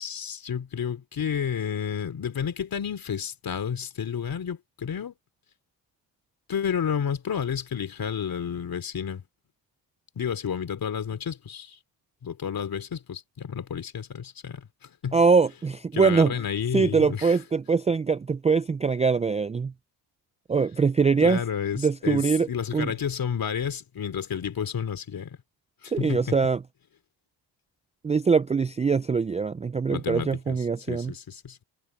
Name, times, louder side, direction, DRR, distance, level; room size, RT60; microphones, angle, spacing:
voice 1, 0.0-5.1 6.5-9.2 10.1-11.8 12.2-15.2 15.9-17.4 21.2-25.4 25.8-26.4 29.9-30.6 30.9-31.6, left 7 dB, 45° left, 3.1 m, -31 dB
voice 2, 15.1-16.3 16.7-19.7 20.5-21.4 21.8-22.5 22.7-22.9 25.9-26.6 28.0-31.1, right 5 dB, 15° right, 0.4 m, -23 dB
cardioid pair, 80°, 48 cm